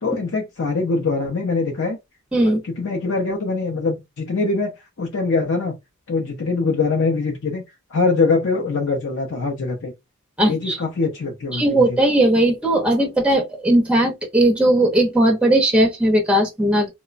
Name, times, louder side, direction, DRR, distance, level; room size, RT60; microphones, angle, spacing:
voice 1, 0.0-2.0 2.4-5.7 6.1-7.6 7.9-9.9 10.5-12.0, left 3 dB, 60° left, 0.5 m, -23 dB
voice 2, 10.4-10.8 11.5-16.9, right 1 dB, 5° right, 0.5 m, -18 dB
2.9 x 2.1 x 2.4 m
head